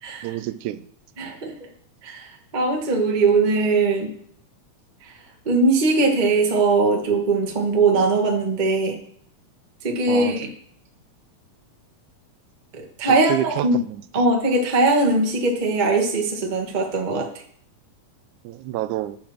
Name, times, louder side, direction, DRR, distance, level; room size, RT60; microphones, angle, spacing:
voice 1, 0.2-0.9 10.1-10.4 13.1-14.0 18.4-19.2, right 13 dB, 90° right, 14 dB, 2.0 m, -28 dB
voice 2, 1.2-1.5 2.0-2.3 2.5-4.1 5.4-9.0 9.8-10.5 12.7-13.8 14.1-17.3, right 3 dB, 30° right, 1 dB, 0.9 m, -20 dB
8.5 x 7.2 x 6.0 m, 0.63 s
omnidirectional pair, 3.4 m